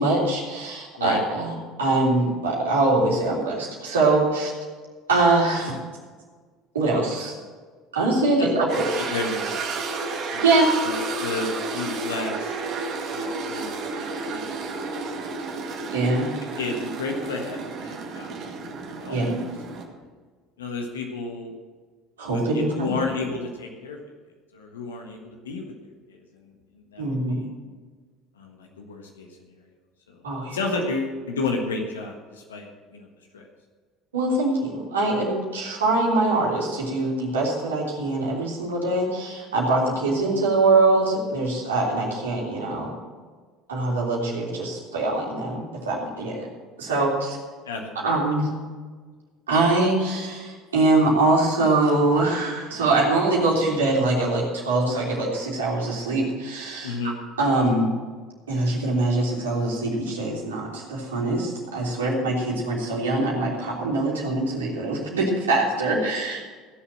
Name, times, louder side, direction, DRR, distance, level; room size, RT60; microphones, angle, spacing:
voice 1, 0.0-4.5 5.1-5.7 6.7-7.3 7.9-9.0 10.4-10.7 15.9-16.3 19.1-19.4 22.2-22.9 27.0-27.4 30.2-30.6 34.1-43.0 43.7-46.5 46.8-47.4 48.0-48.5 49.5-57.1 57.4-57.9 58.5-66.4, right 2 dB, 80° right, -3 dB, 3.3 m, -23 dB
sound 1, 8.7-19.9, right 4 dB, 50° right, 2.1 m, -32 dB
voice 2, 9.1-9.7 10.3-10.4 10.8-12.6 13.1-14.8 15.9-16.2 16.6-18.4 19.0-19.5 20.6-21.5 22.3-24.0 24.5-25.7 26.1-26.5 26.9-27.5 28.4-29.3 30.1-30.2 30.5-33.1 33.3-33.5 47.6-48.1 56.8-57.2, left 3 dB, 80° left, 1 dB, 1.5 m, -32 dB
16.0 x 7.1 x 7.5 m, 1.5 s
figure-of-eight pair, 65°, 0 cm